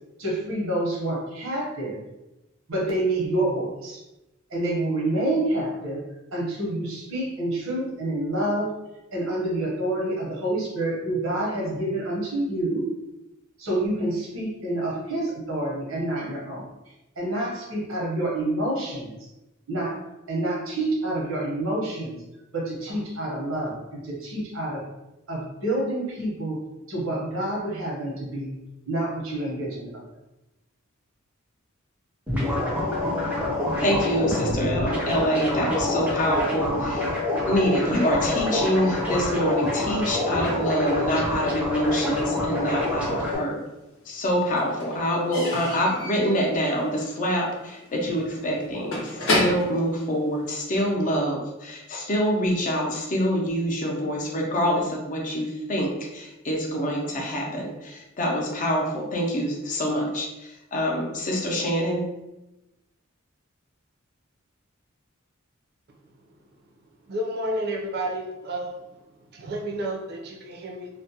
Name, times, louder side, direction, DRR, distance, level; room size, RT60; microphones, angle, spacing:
voice 1, 0.2-2.0 2.7-4.0 4.5-6.0 6.3-8.7 9.1-12.9 13.6-19.2 19.7-20.0 20.3-22.2 22.5-24.8 25.3-26.6 26.9-28.5 28.9-30.0, right 1 dB, 85° right, -4 dB, 0.9 m, -28 dB
sound 1, 32.3-43.4, left 1 dB, 5° right, 0.5 m, -26 dB
voice 2, 33.8-37.1 37.5-43.6 44.1-62.1, equal, 40° left, -1 dB, 0.5 m, -26 dB
Slam / Squeak / Wood, 43.1-43.9 44.2-50.9, left 1 dB, 90° left, 0.7 m, -31 dB
voice 3, 67.1-68.8 69.3-70.9, right 1 dB, 55° right, -1 dB, 0.5 m, -30 dB
2.3 x 2.1 x 2.7 m, 0.96 s
head